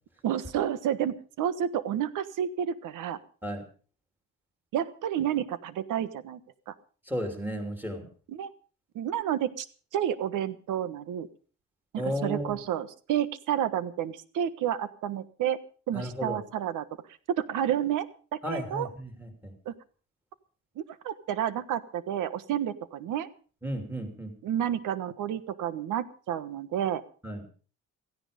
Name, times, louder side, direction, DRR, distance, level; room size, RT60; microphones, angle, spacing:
voice 1, 0.2-3.2 4.7-6.4 6.7-6.8 8.3-8.5 8.9-9.7 9.9-11.3 11.9-15.6 15.9-16.9 17.3-18.1 18.3-18.9 19.6-19.7 20.8-23.3 24.4-27.0, right 10 dB, 75° right, 14 dB, 1.4 m, -30 dB
voice 2, 7.1-8.1 12.0-12.6 15.9-16.4 18.4-19.5 23.6-24.3 27.2-27.4, equal, 5° right, 5 dB, 3.2 m, -34 dB
17.0 x 15.5 x 5.1 m, 0.39 s
cardioid pair, 175°, 32 cm